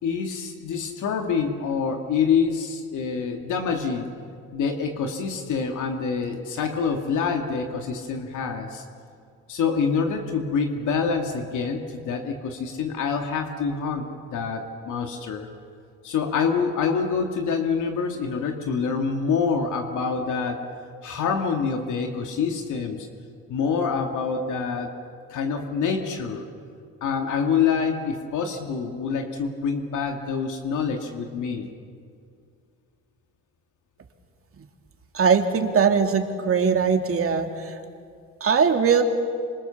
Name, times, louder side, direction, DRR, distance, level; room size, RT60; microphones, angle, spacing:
voice 1, 0.0-4.1 4.5-8.8 9.5-15.5 16.0-20.6 21.0-23.1 23.5-24.9 25.3-26.5 27.0-31.7, left 5 dB, 80° left, 3 dB, 2.4 m, -26 dB
voice 2, 35.1-37.8 38.4-39.0, right 6 dB, 45° right, 5 dB, 2.7 m, -21 dB
27.0 x 26.5 x 7.2 m, 2.3 s
cardioid pair, 90°, 30 cm